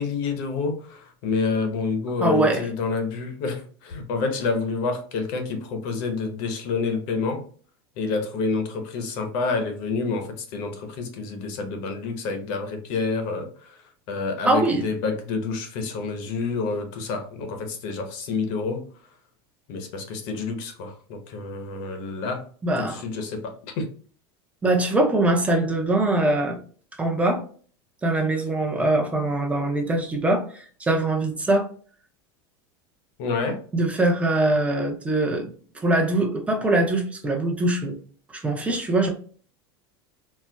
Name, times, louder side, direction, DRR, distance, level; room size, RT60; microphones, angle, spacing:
voice 1, 0.0-7.5 8.0-13.8 14.1-18.9 19.7-22.5 22.8-23.9 33.2-33.6, left 4 dB, 60° left, 0.8 m, -28 dB
voice 2, 2.2-2.7 14.4-14.9 22.6-23.0 24.6-26.6 27.0-27.4 28.0-31.7 33.7-38.0 38.3-39.1, right 2 dB, 10° right, 0.6 m, -22 dB
4.2 x 2.1 x 2.2 m
supercardioid pair, 135°, 13 cm